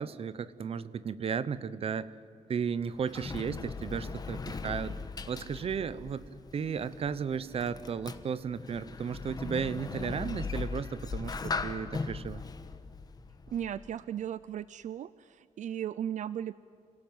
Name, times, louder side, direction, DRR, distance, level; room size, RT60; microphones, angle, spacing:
voice 1, 0.0-2.1 2.5-5.0 5.2-12.4, right 6 dB, 50° right, 15 dB, 0.9 m, -34 dB
Sliding door, 2.6-14.0, left 4 dB, 30° left, 1.2 m, -39 dB
voice 2, 13.5-16.6, right 10 dB, 75° right, 17 dB, 0.5 m, -36 dB
28.5 x 17.5 x 9.5 m, 2.5 s
wide cardioid pair, 160°, 13 cm